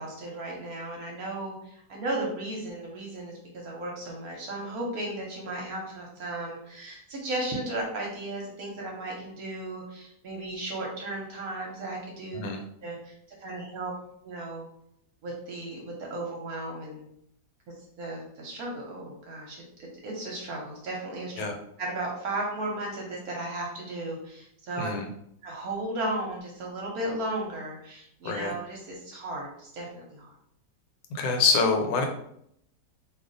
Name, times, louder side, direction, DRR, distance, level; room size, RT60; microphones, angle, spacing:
voice 1, 0.0-12.4 12.8-13.9 14.2-14.7 15.2-17.0 18.0-21.5 21.8-24.9 25.4-30.3, right 2 dB, 65° right, -1 dB, 1.0 m, -35 dB
voice 2, 24.8-25.1 28.2-28.5 31.1-32.1, left 4 dB, 85° left, 4 dB, 1.3 m, -25 dB
2.7 x 2.4 x 3.7 m, 0.71 s
omnidirectional pair, 2.0 m